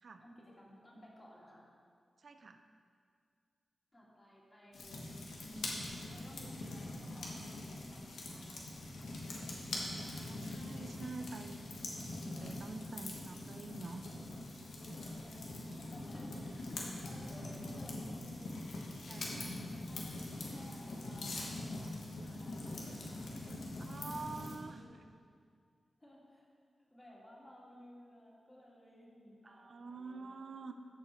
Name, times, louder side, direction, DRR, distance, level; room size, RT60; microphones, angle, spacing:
voice 1, 0.2-1.7 3.9-5.0 5.4-7.4 7.7-9.1 15.2-19.6 19.9-20.1 20.4-22.9 23.2-23.6 24.7-24.9 26.0-26.5 26.9-30.4, equal, 25° left, -5 dB, 2.5 m, -57 dB
voice 2, 2.2-2.6 9.7-11.6 12.2-14.1 16.3-16.6 19.1-19.6 23.9-24.8 29.5-30.7, right 3 dB, 60° right, 7 dB, 0.5 m, -47 dB
sound 1, 4.7-24.6, left 2 dB, 90° left, 1.2 m, -43 dB
13.0 x 4.4 x 4.6 m, 2.2 s
cardioid pair, 65°, 0 cm